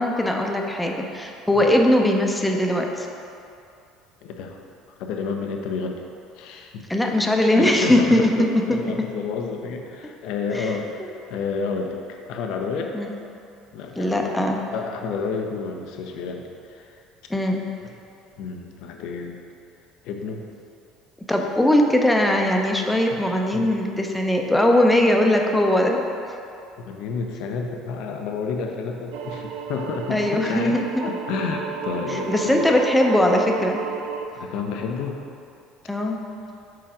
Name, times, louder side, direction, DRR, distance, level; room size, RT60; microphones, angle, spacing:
voice 1, 0.0-3.1 6.9-9.1 10.5-10.8 12.9-13.1 14.0-14.6 17.3-17.6 21.3-26.0 30.1-31.0 32.1-33.8 35.9-36.2, left 1 dB, 5° left, 2 dB, 0.7 m, -20 dB
voice 2, 4.2-4.6 5.0-6.0 6.3-6.9 7.5-12.9 13.7-14.4 14.7-17.0 17.8-17.9 18.4-19.4 20.0-20.5 23.1-23.7 26.9-32.6 34.3-35.2, left 5 dB, 60° left, 3 dB, 0.6 m, -30 dB
sound 1, 29.1-34.3, right 6 dB, 65° right, 0.4 m, -32 dB
5.0 x 4.7 x 4.9 m, 2.5 s
figure-of-eight pair, 60°, 0 cm